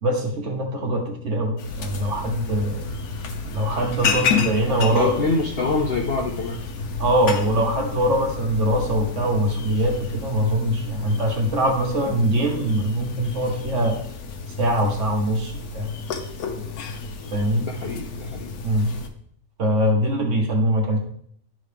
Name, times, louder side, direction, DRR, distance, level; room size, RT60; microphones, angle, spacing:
voice 1, 0.0-2.8 3.5-5.2 7.0-14.0 14.6-15.9 17.3-17.6 18.6-18.9 19.6-21.0, right 1 dB, 55° right, 1 dB, 1.5 m, -22 dB
sound 1, 1.6-19.1, left 5 dB, 75° left, 1.2 m, -31 dB
voice 2, 4.6-6.6 17.6-18.5, left 3 dB, 60° left, 0 dB, 0.6 m, -26 dB
11.0 x 3.8 x 3.4 m, 0.64 s
omnidirectional pair, 1.6 m